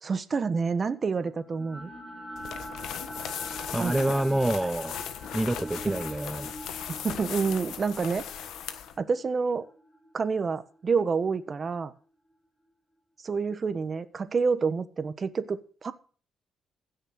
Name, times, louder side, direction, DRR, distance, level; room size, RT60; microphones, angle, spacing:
voice 1, 0.0-1.9 3.8-3.9 7.0-8.2 9.0-9.7 10.1-11.9 13.2-15.9, right 5 dB, 40° right, 1.3 m, -28 dB
sound 1, 1.2-11.4, equal, 5° left, 4.8 m, -44 dB
sound 2, 2.4-9.0, left 9 dB, 80° left, 1.4 m, -38 dB
voice 2, 3.7-5.0 5.3-6.5, right 1 dB, 10° right, 0.6 m, -27 dB
16.0 x 6.6 x 6.6 m
cardioid pair, 90°, 0 cm